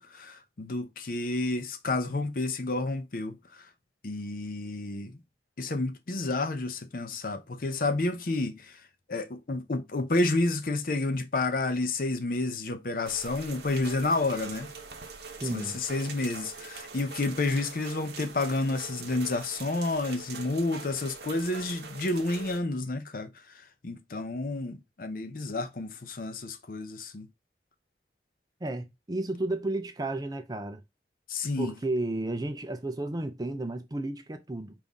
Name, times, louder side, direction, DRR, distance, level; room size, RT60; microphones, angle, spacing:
voice 1, 0.0-3.7 4.0-5.2 5.6-14.7 15.4-27.3 31.3-31.8, left 2 dB, 50° left, 0.6 m, -30 dB
sound 1, 13.0-22.6, right 5 dB, 70° right, 0.9 m, -43 dB
voice 2, 15.4-15.8 28.6-30.8 31.6-34.7, right 2 dB, 20° right, 0.5 m, -32 dB
5.4 x 2.6 x 3.5 m
head